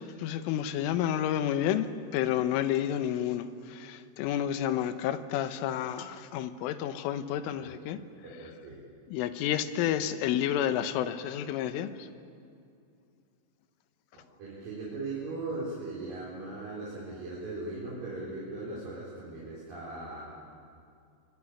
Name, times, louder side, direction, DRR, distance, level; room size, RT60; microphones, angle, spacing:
voice 1, 0.0-1.9 2.1-8.0 9.1-12.1, left 10 dB, 80° left, 3.4 m, -30 dB
voice 2, 8.2-8.8 10.0-10.1 14.1-20.2, right 2 dB, 45° right, 5.5 m, -39 dB
25.0 x 22.5 x 9.9 m
omnidirectional pair, 5.9 m